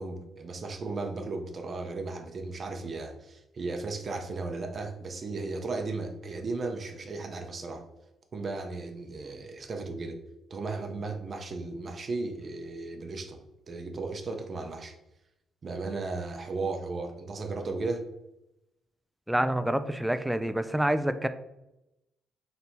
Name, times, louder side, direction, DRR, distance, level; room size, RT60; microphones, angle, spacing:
voice 1, 0.0-7.8 8.3-10.2 10.5-13.4 13.7-14.9 15.6-18.1, right 3 dB, 45° right, 4 dB, 0.6 m, -35 dB
voice 2, 19.3-21.3, right 1 dB, 5° right, 10 dB, 0.3 m, -27 dB
3.3 x 2.7 x 4.3 m, 0.90 s
cardioid pair, 90°, 0 cm